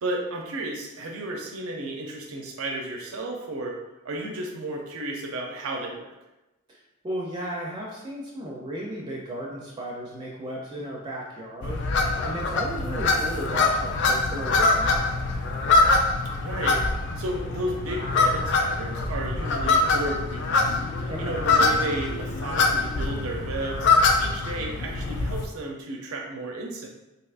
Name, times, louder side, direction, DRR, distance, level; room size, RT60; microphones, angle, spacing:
voice 1, 0.0-6.1 16.4-16.8 17.2-20.8 21.2-23.9 24.2-26.9, right 2 dB, 85° right, 1 dB, 0.5 m, -33 dB
voice 2, 7.0-11.9 12.2-15.4 21.1-21.4, right 1 dB, 20° right, -3 dB, 0.4 m, -35 dB
sound 1, 11.6-25.4, left 3 dB, 55° left, 0.4 m, -24 dB
3.4 x 2.8 x 2.4 m, 1.0 s
head